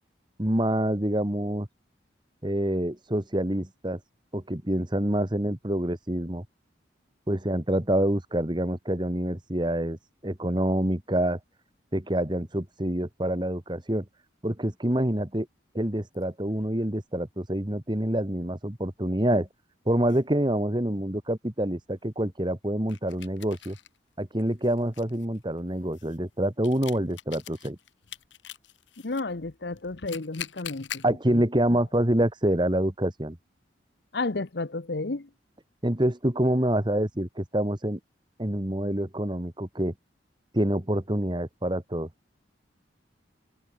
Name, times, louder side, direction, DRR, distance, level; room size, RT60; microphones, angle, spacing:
voice 1, 0.4-1.7 2.4-4.0 4.3-6.5 7.3-10.0 10.2-11.4 11.9-14.1 14.4-15.5 15.7-19.5 19.9-23.8 24.2-27.8 31.0-33.4 35.8-38.0 38.4-39.9 40.5-42.1, right 1 dB, 25° right, 1.7 m, -26 dB
sound 1, 16.1-16.8 19.3-19.4 20.1-20.2 22.9-24.0 24.4-29.2 29.8-31.1, left 10 dB, 75° left, 1.8 m, -43 dB
voice 2, 29.0-31.4 31.7-31.8 34.1-35.3, left 3 dB, 60° left, 0.9 m, -32 dB
head